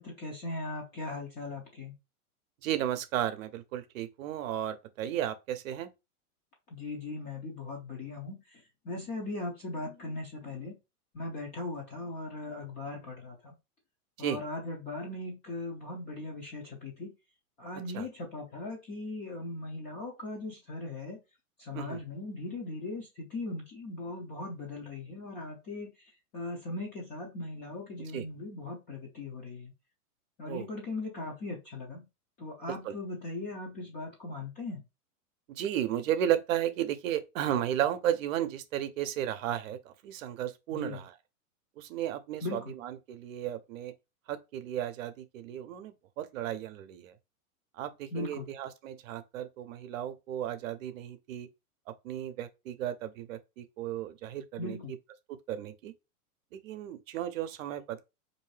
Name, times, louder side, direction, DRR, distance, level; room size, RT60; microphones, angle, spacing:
voice 1, 0.0-1.9 6.7-10.8 11.1-13.5 14.2-17.1 17.6-21.2 21.6-29.7 30.4-32.1 32.4-34.8 40.7-41.0 42.4-42.7 48.1-48.5 54.6-54.9, left 2 dB, 20° left, 0.6 m, -39 dB
voice 2, 2.6-5.9 14.2-14.4 17.9-18.1 21.7-22.0 28.1-28.2 30.5-30.6 32.8-32.9 35.5-41.1 41.8-43.9 44.3-47.1 47.7-51.5 52.0-54.8 55.3-55.9 56.5-58.0, right 11 dB, 60° right, 0.7 m, -34 dB
3.6 x 2.7 x 3.2 m
hypercardioid pair, 150°, 45 cm